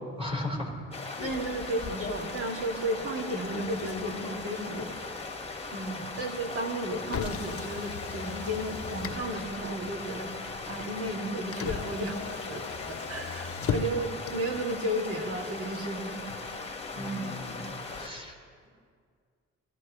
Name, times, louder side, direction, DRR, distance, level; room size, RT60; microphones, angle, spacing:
voice 1, 0.2-0.7 16.9-18.3, left 1 dB, 20° right, -1 dB, 4.0 m, -36 dB
sound 1, 0.9-18.1, left 3 dB, 20° left, 1.5 m, -39 dB
Motor vehicle (road), 1.2-18.3, left 6 dB, 50° left, 0.8 m, -41 dB
voice 2, 1.2-5.0 5.7-10.3 10.6-16.2 16.9-17.4, right 1 dB, 50° right, 0 dB, 2.5 m, -33 dB
22.0 x 13.5 x 3.2 m, 2.1 s
cardioid pair, 90°, 30 cm